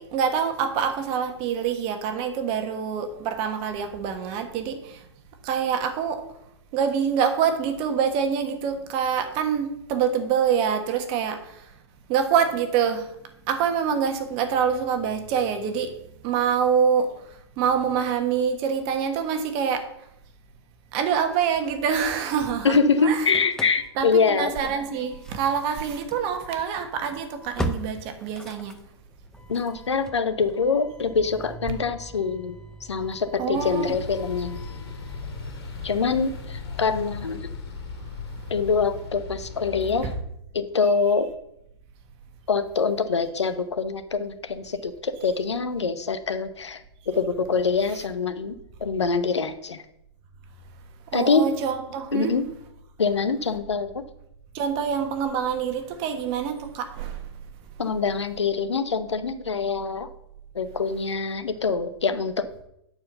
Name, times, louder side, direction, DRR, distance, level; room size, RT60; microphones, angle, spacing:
voice 1, 0.0-5.1 5.4-6.2 6.7-11.7 12.1-13.2 13.4-15.9 16.2-19.9 20.9-23.3 24.0-28.8 33.4-33.9 35.6-35.9 38.3-38.5 40.0-40.1 51.1-52.3 54.5-57.3, right 7 dB, 40° right, 6 dB, 1.4 m, -26 dB
Engine starting / Slam, 21.3-22.7 23.0-36.0, equal, 5° left, 0.7 m, -41 dB
voice 2, 22.6-24.5 29.5-32.6 32.9-34.6 35.8-37.5 38.5-40.1 40.5-41.3 42.5-46.8 47.1-49.8 51.1-51.5 52.1-52.5 53.0-54.0 57.8-60.1 60.5-62.5, left 5 dB, 85° left, 11 dB, 0.8 m, -24 dB
sound 1, 33.5-40.1, left 4 dB, 60° left, 2.6 m, -37 dB
8.8 x 4.7 x 6.7 m, 0.78 s
hypercardioid pair, 120°, 14 cm